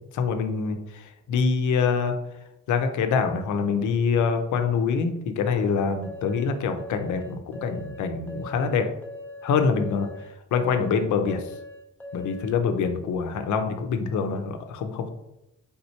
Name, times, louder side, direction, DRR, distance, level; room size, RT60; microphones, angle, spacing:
voice 1, 0.1-2.1 2.7-8.9 9.4-10.1 10.5-11.5 12.1-15.1, left 5 dB, 75° left, 7 dB, 0.6 m, -25 dB
sound 1, 6.0-12.6, left 1 dB, 5° left, 0.6 m, -41 dB
4.3 x 3.6 x 2.8 m, 0.88 s
cardioid pair, 90°, 30 cm